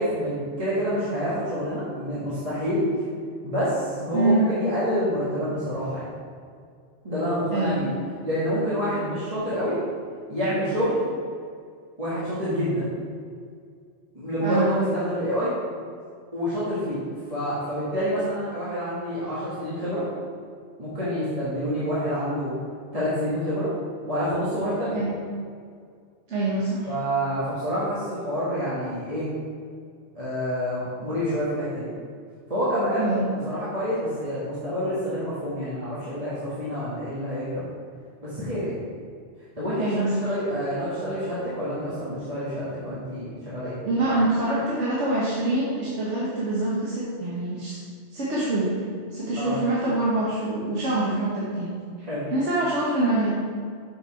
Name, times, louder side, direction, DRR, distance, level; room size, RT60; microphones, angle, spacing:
voice 1, 0.0-2.9 3.4-6.0 7.0-7.9 8.2-9.8 10.3-11.0 12.0-12.9 14.1-15.5 16.3-17.0 17.3-20.0 20.8-22.5 22.9-23.7 24.1-25.0 26.9-29.3 30.1-31.9 32.5-37.6 38.2-38.7 39.6-43.8 49.3-49.6 52.0-52.2, equal, 30° right, -11 dB, 1.8 m, -27 dB
voice 2, 4.1-4.5 7.5-7.9 14.4-14.7 24.9-25.1 26.3-26.9 33.0-33.2 39.8-40.3 43.8-47.8 48.1-48.7 49.1-51.7 52.3-53.3, right 2 dB, 80° right, -8 dB, 1.5 m, -25 dB
6.7 x 5.5 x 4.4 m, 2.2 s
omnidirectional pair, 1.2 m